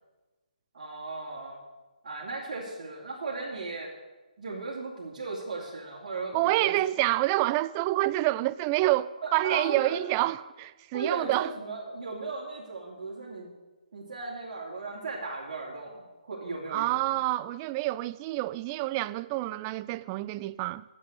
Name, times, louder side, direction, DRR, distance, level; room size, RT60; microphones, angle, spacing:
voice 1, 0.7-1.6 2.0-3.9 4.4-6.8 9.2-10.0 10.9-13.5 13.9-17.0, right 3 dB, 50° right, 3.0 m, -36 dB
voice 2, 6.3-11.5 16.7-20.8, right 17 dB, 20° right, 0.3 m, -27 dB
10.0 x 7.8 x 8.1 m
figure-of-eight pair, 145°, 4 cm